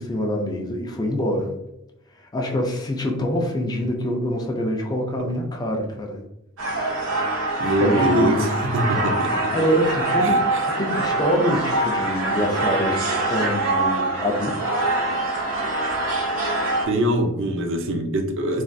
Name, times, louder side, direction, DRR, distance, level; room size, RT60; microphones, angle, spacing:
voice 1, 0.0-1.5 2.2-6.2 7.6-8.5 9.5-14.8, equal, 20° left, 1 dB, 0.3 m, -25 dB
sound 1, 6.6-16.8, right 2 dB, 90° right, 0.8 m, -24 dB
voice 2, 7.6-8.4 8.7-9.5 10.2-10.6 16.9-18.6, right 1 dB, 60° right, 4 dB, 0.5 m, -23 dB
3.2 x 2.3 x 2.5 m, 0.86 s
head